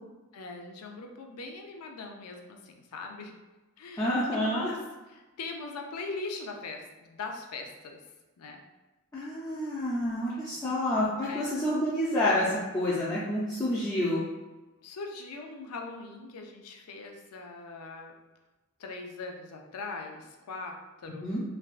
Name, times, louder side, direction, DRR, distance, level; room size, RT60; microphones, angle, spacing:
voice 1, 0.3-3.4 3.8-4.8 5.1-8.0 8.4-8.6 11.3-11.5 14.8-18.2 18.8-21.4, left 3 dB, 90° left, 2 dB, 0.4 m, -41 dB
voice 2, 4.0-4.7 9.1-14.2 21.2-21.4, left 1 dB, 15° left, -9 dB, 0.4 m, -28 dB
3.3 x 2.3 x 2.4 m, 1.1 s
head